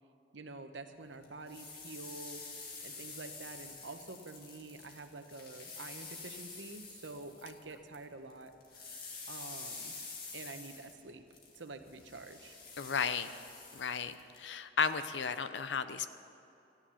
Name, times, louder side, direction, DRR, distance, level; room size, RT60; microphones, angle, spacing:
voice 1, 0.3-2.4 2.8-8.5 9.3-9.9 10.3-11.2 11.5-12.6, right 3 dB, 80° right, 7 dB, 0.9 m, -47 dB
sound 1, 1.2-8.0 8.3-14.4, left 4 dB, 55° left, 1.9 m, -48 dB
voice 2, 12.8-13.3 13.7-16.1, left 6 dB, 75° left, 12 dB, 0.6 m, -34 dB
14.0 x 10.0 x 7.0 m, 2.8 s
head